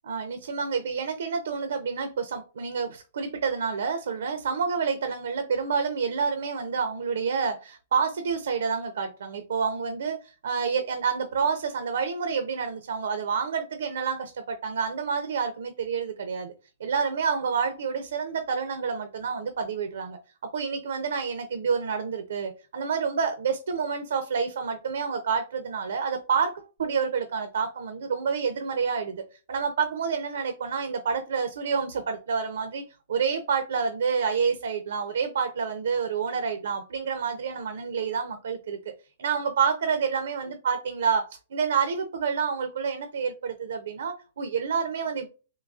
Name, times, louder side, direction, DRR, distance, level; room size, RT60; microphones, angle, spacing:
voice 1, 0.0-16.5 16.8-20.2 20.5-26.5 26.8-29.2 29.5-32.8 33.1-38.8 39.2-45.3, right 6 dB, 80° right, 0.6 m, -28 dB
3.9 x 2.8 x 2.3 m
hypercardioid pair, 155°, 0 cm